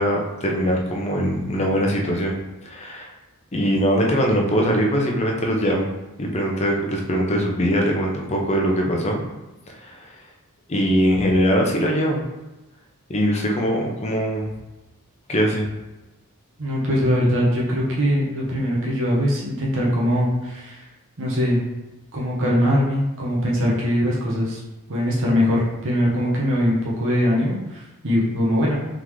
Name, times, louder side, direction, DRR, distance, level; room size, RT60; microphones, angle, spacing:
voice 1, 0.0-2.3 2.6-3.1 3.5-5.9 6.2-9.2 9.7-10.2 10.7-12.2 13.1-14.5 15.3-15.6, equal, 30° left, 0 dB, 0.7 m, -21 dB
voice 2, 16.6-20.9 21.2-21.6 22.1-24.6 24.9-28.7, equal, 60° right, -4 dB, 1.0 m, -21 dB
3.8 x 3.5 x 3.2 m, 1.0 s
head